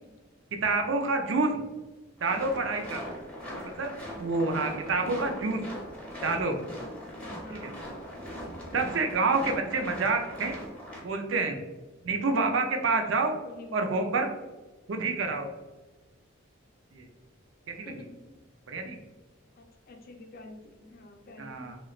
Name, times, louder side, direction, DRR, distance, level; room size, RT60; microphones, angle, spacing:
voice 1, 0.6-1.6 2.2-3.0 3.8-3.9 4.2-5.6 6.2-6.6 7.5-7.7 8.7-10.6 11.0-11.6 12.0-13.4 13.7-14.3 14.9-15.5 16.9-17.1 17.7-17.9 18.7-19.0 21.4-21.8, right 3 dB, 75° right, 4 dB, 0.5 m, -28 dB
sound 1, 2.2-11.0, equal, 5° left, 0.8 m, -40 dB
voice 2, 5.0-5.4 7.4-7.8 12.8-13.1 13.4-14.1 17.8-18.2 19.6-21.7, left 2 dB, 50° left, 3 dB, 0.5 m, -47 dB
3.0 x 3.0 x 2.3 m, 1.2 s
head